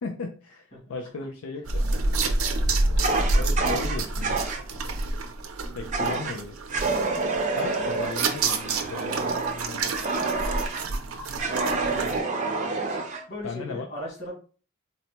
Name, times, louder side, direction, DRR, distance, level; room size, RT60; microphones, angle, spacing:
voice 1, 0.0-2.0 3.3-4.4 5.7-6.8 7.6-9.9 13.4-13.9, left 4 dB, 85° left, 3 dB, 0.4 m, -36 dB
sound 1, 1.7-12.2, right 2 dB, 85° right, 0.5 m, -28 dB
Fire, 3.0-4.6 5.9-6.4 6.7-10.9 11.4-13.2, right 3 dB, 35° right, 0.5 m, -28 dB
voice 2, 11.7-13.0 13.3-14.3, left 1 dB, 50° left, -3 dB, 1.8 m, -39 dB
4.0 x 2.1 x 2.9 m, 0.38 s
head